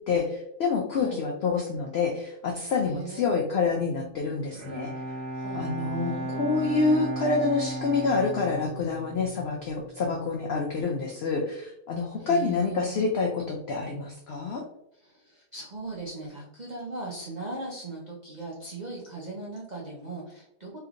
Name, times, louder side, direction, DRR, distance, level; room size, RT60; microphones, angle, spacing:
voice 1, 0.1-4.9 5.6-14.6, left 4 dB, 90° left, 1 dB, 0.5 m, -27 dB
voice 2, 2.8-3.4 5.3-6.8 12.2-13.1 14.9-20.8, right 3 dB, 65° right, -4 dB, 0.4 m, -39 dB
Bowed string instrument, 4.5-10.1, right 1 dB, 85° right, 1.4 m, -35 dB
3.2 x 2.8 x 2.4 m, 0.76 s
omnidirectional pair, 1.6 m